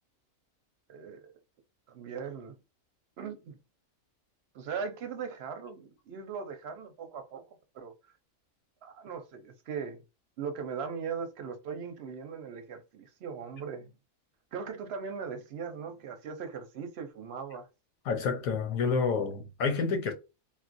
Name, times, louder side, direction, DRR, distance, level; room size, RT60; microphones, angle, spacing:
voice 1, 0.9-1.3 1.9-2.6 3.2-3.6 4.5-7.4 7.7-7.9 8.8-10.0 10.4-13.9 14.5-17.7, right 6 dB, 55° right, 0.8 m, -39 dB
voice 2, 18.0-20.1, left 5 dB, 90° left, 1.2 m, -29 dB
3.9 x 2.4 x 2.5 m
omnidirectional pair, 1.5 m